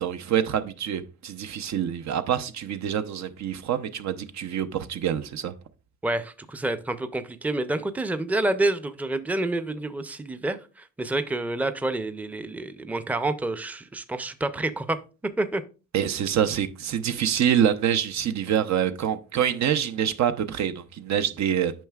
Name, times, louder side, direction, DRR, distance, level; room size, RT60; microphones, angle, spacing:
voice 1, 0.0-5.5 15.9-21.7, right 9 dB, 65° right, 0.7 m, -26 dB
voice 2, 6.0-15.0 15.4-15.6, right 2 dB, 5° right, 0.5 m, -28 dB
9.0 x 5.5 x 2.3 m
cardioid pair, 90°, 30 cm